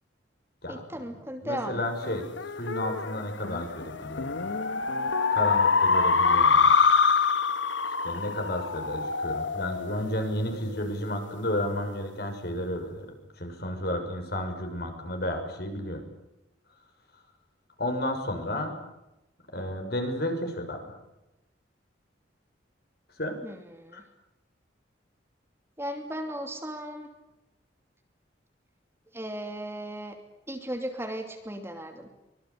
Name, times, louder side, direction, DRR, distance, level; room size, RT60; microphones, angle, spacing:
voice 1, 0.7-1.9 23.4-24.0 25.8-27.1 29.1-30.2 30.5-32.1, right 1 dB, 15° right, 4 dB, 2.8 m, -36 dB
voice 2, 1.4-2.3 2.6-4.4 5.3-6.7 8.0-13.1 13.4-16.0 17.8-18.7 19.5-20.8 23.2-23.4 23.9-24.0, left 1 dB, 55° left, 4 dB, 6.3 m, -32 dB
sound 1, 2.0-10.9, left 5 dB, 85° left, 1.4 m, -25 dB
24.5 x 22.0 x 8.4 m, 0.94 s
head